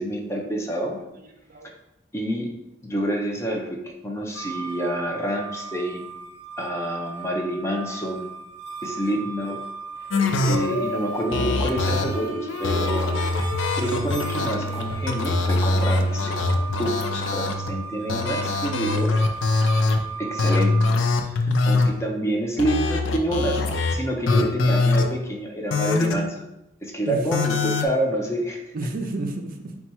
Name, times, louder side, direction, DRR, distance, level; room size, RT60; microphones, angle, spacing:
voice 1, 0.0-1.0 2.1-2.5 2.8-6.1 6.6-8.3 8.8-9.6 10.4-13.2 13.7-16.4 16.8-17.0 17.3-19.1 20.2-20.8 21.7-23.6 23.9-26.4 26.8-28.6, right 1 dB, 15° left, 1 dB, 0.5 m, -27 dB
voice 2, 1.0-1.7 21.5-22.0 27.1-27.6 28.7-29.8, right 2 dB, 50° right, 4 dB, 0.4 m, -31 dB
sound 1, 4.3-20.8, right 5 dB, 15° right, 0.8 m, -37 dB
sound 2, 10.1-17.7 18.1-20.0 20.4-21.9 22.6-23.9 24.3-25.0 25.7-26.1 27.3-27.9, left 3 dB, 75° left, 0.4 m, -23 dB
4.2 x 2.3 x 4.3 m, 0.88 s
head